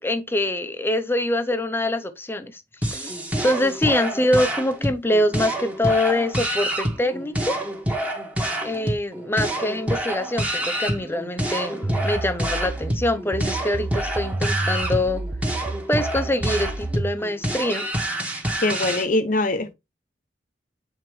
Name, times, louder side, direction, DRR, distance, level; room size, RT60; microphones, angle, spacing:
voice 1, 0.0-2.6 2.9-3.1 3.4-7.6 8.6-15.2 15.9-17.9, left 1 dB, 15° left, 0.7 m, -24 dB
sound 1, 2.8-19.1, right 1 dB, 10° right, 1.3 m, -27 dB
sound 2, 11.8-17.2, right 2 dB, 25° right, 0.6 m, -30 dB
voice 2, 18.6-19.7, left 2 dB, 50° left, 0.8 m, -22 dB
7.8 x 4.4 x 3.1 m
head